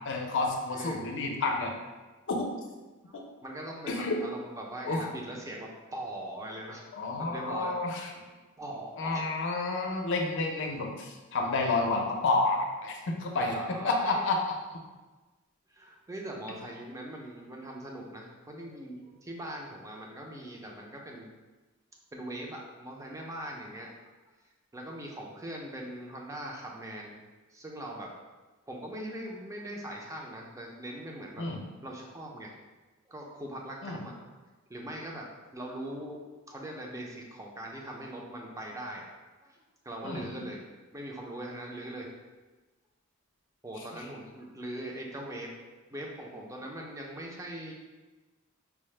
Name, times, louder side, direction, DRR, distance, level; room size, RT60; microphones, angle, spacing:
voice 1, 0.0-1.7 2.3-2.5 3.1-3.2 3.9-4.2 4.9-5.0 7.0-8.0 9.0-13.5 13.8-14.4 14.7-14.8 31.4-31.7 33.8-34.1 40.0-40.4, left 3 dB, 60° left, 2 dB, 0.5 m, -30 dB
voice 2, 3.1-6.9 7.2-7.8 8.6-9.3 13.4-14.2 15.7-21.3 22.1-23.9 24.7-27.2 27.5-28.1 28.7-31.5 31.8-32.5 33.1-34.4 34.7-35.3 35.5-39.1 39.4-39.6 39.8-40.6 40.9-42.1 43.6-45.5 45.9-47.7, right 1 dB, 15° right, -1 dB, 0.5 m, -41 dB
4.6 x 2.0 x 3.2 m, 1.2 s
head